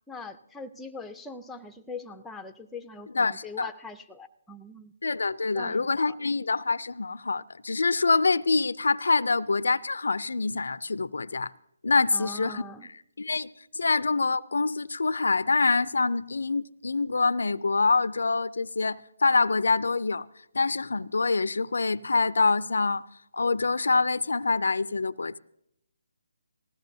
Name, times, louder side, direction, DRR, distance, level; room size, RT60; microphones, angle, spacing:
voice 1, 0.1-4.9 5.5-6.2 12.1-12.9, left 3 dB, 5° left, 0.5 m, -42 dB
voice 2, 3.1-3.7 5.0-11.5 11.8-12.6 13.2-20.3 20.5-23.0 23.3-25.4, left 3 dB, 80° left, 0.4 m, -25 dB
19.5 x 16.0 x 2.7 m
hypercardioid pair, 155°, 0 cm